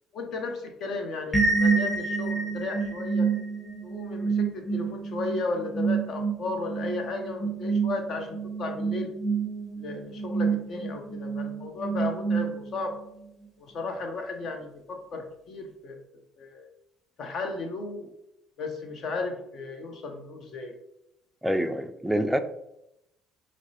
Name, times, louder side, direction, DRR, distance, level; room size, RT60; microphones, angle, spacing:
voice 1, 0.1-3.3 3.8-9.1 9.8-13.0 13.6-16.0 16.4-16.7 17.2-18.1 18.6-20.8, left 3 dB, 60° left, 5 dB, 0.7 m, -34 dB
sound 1, 1.3-13.0, right 4 dB, 25° left, 1.2 m, -28 dB
voice 2, 21.4-22.4, equal, 5° right, 8 dB, 0.3 m, -26 dB
4.4 x 2.0 x 2.8 m, 0.83 s
hypercardioid pair, 65°, 0 cm